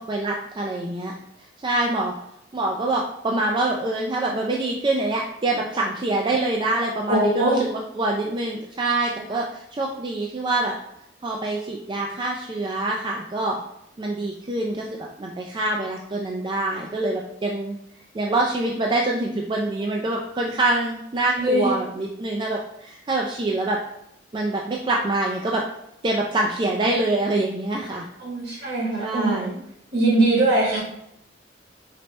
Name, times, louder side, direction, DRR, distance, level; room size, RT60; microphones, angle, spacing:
voice 1, 0.1-1.1 1.6-2.1 2.5-10.7 11.2-13.6 14.0-17.8 18.1-23.8 24.3-25.6 26.0-28.0 29.0-29.6, right 2 dB, 25° right, -1 dB, 0.3 m, -25 dB
voice 2, 7.1-7.6 21.4-21.7 28.2-29.5 29.9-30.8, right 2 dB, 60° right, -3 dB, 1.6 m, -21 dB
4.2 x 3.2 x 3.1 m, 0.78 s
head